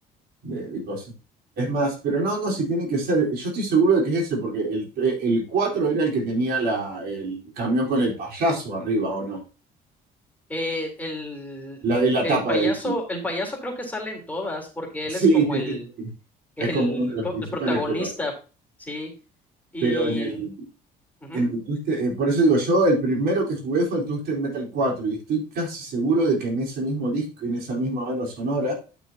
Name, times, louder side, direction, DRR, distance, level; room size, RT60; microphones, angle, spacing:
voice 1, 0.4-1.0 1.6-9.4 11.8-12.9 15.1-16.1 16.6-18.1 19.8-20.5 21.3-28.7, right 2 dB, 65° right, -1 dB, 4.3 m, -24 dB
voice 2, 10.5-11.8 12.2-15.8 16.6-18.3 18.8-19.1 19.7-20.4 21.2-21.5, left 1 dB, 10° left, 0 dB, 3.7 m, -30 dB
11.5 x 6.3 x 2.8 m, 0.34 s
cardioid pair, 110°, 17 cm